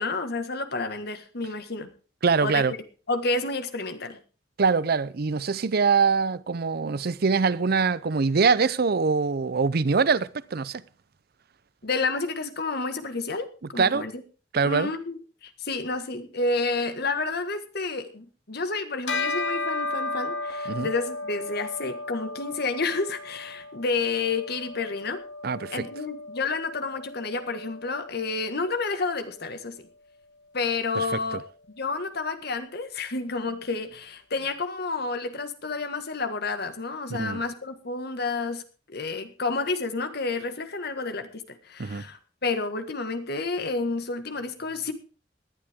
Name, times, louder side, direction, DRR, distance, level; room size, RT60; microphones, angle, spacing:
voice 1, 0.0-1.9 2.4-2.6 3.1-4.2 11.8-13.5 13.7-14.1 14.6-25.2 25.7-29.8 30.5-31.4 31.8-38.6 38.9-44.9, left 3 dB, 60° left, 1.7 m, -30 dB
voice 2, 2.2-2.7 4.6-10.8 13.8-14.1 14.5-14.9 20.7-20.9 25.4-25.8 31.0-31.1 37.1-37.4 41.8-42.0, right 5 dB, 55° right, 0.6 m, -23 dB
Bell, 19.1-28.8, left 3 dB, 85° left, 2.3 m, -35 dB
18.5 x 11.5 x 3.6 m
head